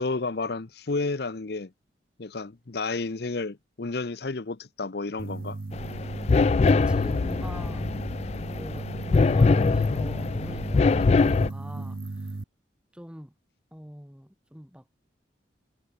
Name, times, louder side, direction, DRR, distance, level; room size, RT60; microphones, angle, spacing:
voice 1, 0.0-1.7 2.2-5.6, left 3 dB, 60° left, 0.8 m, -31 dB
sound 1, 5.2-12.4, right 2 dB, 50° right, 0.6 m, -36 dB
sound 2, 5.7-11.5, left 4 dB, 35° left, 0.3 m, -23 dB
voice 2, 6.6-7.9 8.5-12.3 12.9-13.3 13.7-14.8, equal, 5° right, 2.1 m, -42 dB
head